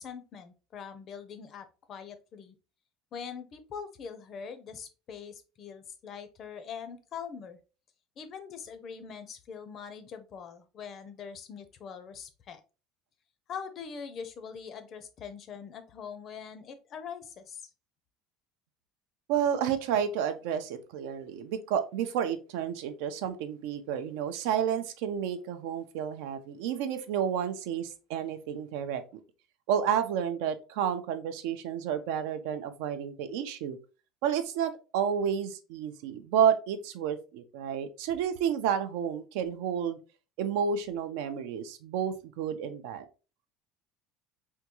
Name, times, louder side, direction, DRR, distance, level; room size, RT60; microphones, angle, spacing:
voice 1, 0.0-2.5 3.1-7.6 8.2-12.6 13.5-17.7, left 6 dB, 35° left, 10 dB, 0.5 m, -43 dB
voice 2, 19.3-29.0 29.7-33.8 34.2-40.0 40.4-43.0, right 8 dB, 75° right, 9 dB, 0.5 m, -30 dB
3.5 x 2.3 x 2.9 m, 0.33 s
cardioid pair, 155°, 0 cm